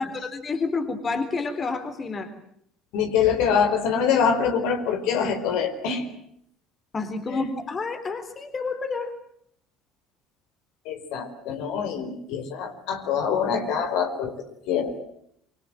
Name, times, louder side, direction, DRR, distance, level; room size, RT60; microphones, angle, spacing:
voice 1, 0.0-2.3 6.9-9.1, left 4 dB, 35° left, 8 dB, 3.8 m, -29 dB
voice 2, 2.9-6.1 7.3-7.5 10.8-14.3 14.7-15.0, left 7 dB, 65° left, 6 dB, 4.8 m, -24 dB
27.5 x 25.5 x 7.7 m, 0.71 s
figure-of-eight pair, 60°, 0 cm